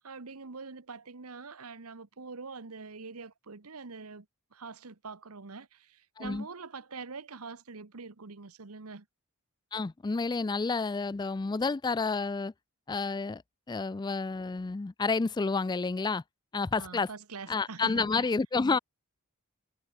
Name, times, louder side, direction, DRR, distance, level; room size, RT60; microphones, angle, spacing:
voice 1, 0.0-4.3 4.5-9.1 16.8-18.3, right 4 dB, 85° right, 1.2 m, -44 dB
voice 2, 9.7-12.5 12.9-13.4 13.7-16.2 16.5-17.1 17.5-18.8, left 4 dB, 20° left, 0.3 m, -30 dB
head